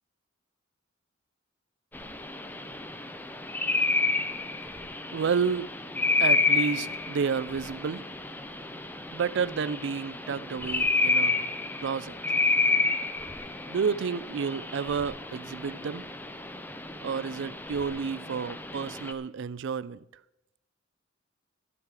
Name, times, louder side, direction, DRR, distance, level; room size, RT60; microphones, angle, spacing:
sound 1, 1.9-19.1, left 3 dB, 10° left, 0.6 m, -30 dB
voice 1, 5.1-5.7 6.2-8.0 9.1-11.5 11.8-12.1 13.7-16.1 17.0-20.0, right 6 dB, 60° right, 0.4 m, -30 dB
13.5 x 9.7 x 4.8 m
head